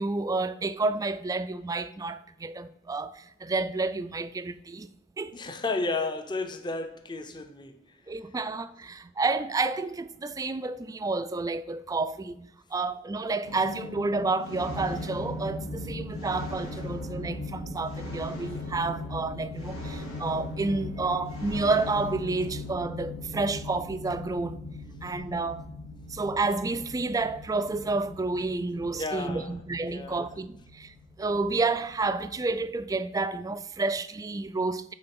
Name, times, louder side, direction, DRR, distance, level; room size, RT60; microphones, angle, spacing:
voice 1, 0.0-4.9 5.2-5.4 8.1-24.6 25.0-25.7 26.1-30.9 31.2-34.9, right 3 dB, 15° right, 0.3 m, -30 dB
voice 2, 5.3-7.8 28.9-29.5 29.9-30.3, left 3 dB, 20° left, 0.7 m, -32 dB
sound 1, 13.4-32.7, left 1 dB, 80° left, 2.1 m, -39 dB
8.7 x 3.9 x 5.9 m
head